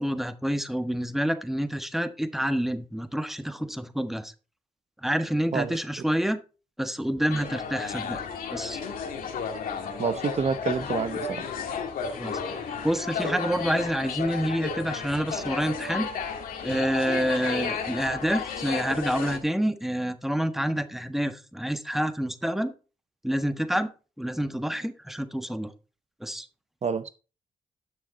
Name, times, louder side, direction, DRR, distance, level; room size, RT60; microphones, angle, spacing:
voice 1, 0.0-4.3 5.0-6.4 6.8-8.2 8.5-8.8 12.1-12.4 12.8-16.1 16.6-22.7 23.2-23.9 24.2-25.7 26.2-26.5, equal, ahead, 10 dB, 1.3 m, -28 dB
sound 1, 7.3-19.4, left 6 dB, 80° left, 1.8 m, -33 dB
voice 2, 10.0-11.5 26.8-27.1, right 5 dB, 50° right, 12 dB, 0.8 m, -28 dB
12.0 x 6.4 x 4.0 m, 0.34 s
supercardioid pair, 45°, 15 cm